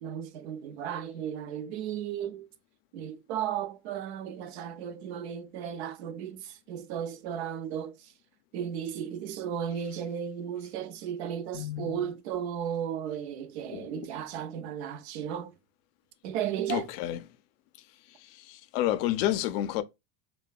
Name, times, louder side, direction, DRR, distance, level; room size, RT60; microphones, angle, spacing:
voice 1, 0.0-2.5 2.9-8.1 8.5-15.6 16.2-16.9, right 9 dB, 75° right, 0.6 m, -35 dB
voice 2, 11.5-12.0 13.7-14.0 16.7-17.2 18.2-19.8, left 13 dB, 60° left, 0.4 m, -30 dB
3.1 x 2.2 x 2.2 m
supercardioid pair, 135°, 33 cm